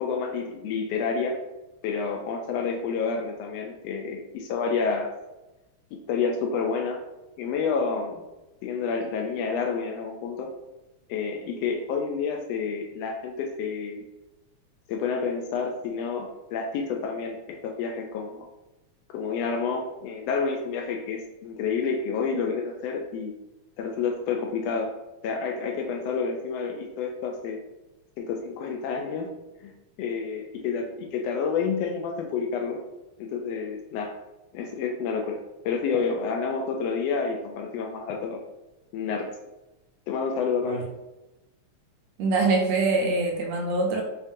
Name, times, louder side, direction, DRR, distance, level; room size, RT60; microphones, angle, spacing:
voice 1, 0.0-1.4 1.8-5.1 5.9-7.0 7.4-8.2 8.6-10.5 11.1-14.0 14.9-18.5 19.1-23.3 23.8-24.9 25.2-27.6 28.2-29.3 29.6-29.7 30.0-32.8 33.2-34.1 34.5-38.4 38.9-39.3 40.1-40.8, left 5 dB, 90° left, 2 dB, 1.4 m, -29 dB
voice 2, 42.2-44.0, right 3 dB, 75° right, 1 dB, 1.8 m, -24 dB
7.1 x 2.5 x 2.6 m, 0.99 s
omnidirectional pair, 3.4 m